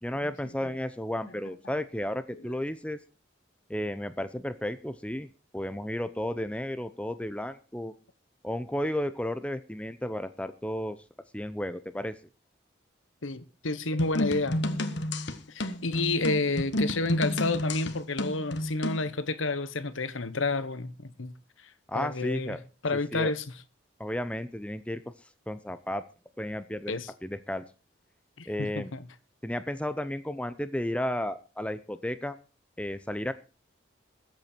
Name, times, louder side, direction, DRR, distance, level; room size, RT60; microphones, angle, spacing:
voice 1, 0.0-3.0 3.7-5.3 5.5-7.9 8.4-11.0 11.3-12.2 21.9-22.6 23.1-23.3 24.0-25.0 25.5-26.0 26.4-27.6 28.5-28.9 29.4-32.4 32.8-33.3, left 1 dB, 5° left, 0.7 m, -33 dB
voice 2, 13.2-14.6 15.5-21.3 21.9-22.6 22.8-23.4 26.9-27.1 28.4-29.0, left 3 dB, 80° left, 1.2 m, -30 dB
sound 1, 14.0-19.1, left 1 dB, 60° left, 1.4 m, -31 dB
21.0 x 8.2 x 4.5 m
head